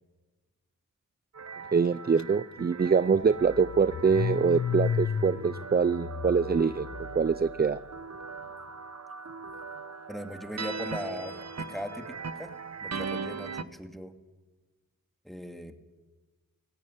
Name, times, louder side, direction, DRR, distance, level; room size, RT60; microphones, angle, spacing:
sound 1, 1.3-13.6, right 4 dB, 50° right, 1.1 m, -40 dB
voice 1, 1.7-7.8, right 5 dB, 30° right, 16 dB, 0.5 m, -25 dB
Car / Engine starting, 2.2-2.3 2.6-7.8, left 7 dB, 55° left, 0.9 m, -34 dB
voice 2, 10.1-14.2 15.2-15.8, equal, ahead, 5 dB, 2.4 m, -39 dB
17.5 x 16.5 x 10.0 m, 1.3 s
cardioid pair, 55°, 34 cm